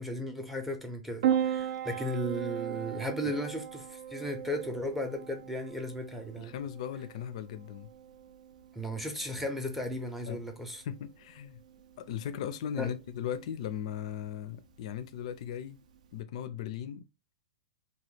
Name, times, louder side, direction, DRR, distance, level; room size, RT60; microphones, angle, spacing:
voice 1, 0.0-6.5 8.7-10.8 12.8-12.9, equal, 5° right, 0.6 m, -35 dB
Piano, 1.2-16.2, right 10 dB, 65° right, 0.4 m, -38 dB
voice 2, 6.3-7.9 10.3-10.4 10.8-11.6 12.0-15.8 16.1-17.0, left 9 dB, 55° left, 0.4 m, -38 dB
2.9 x 2.2 x 3.2 m
hypercardioid pair, 140°, 4 cm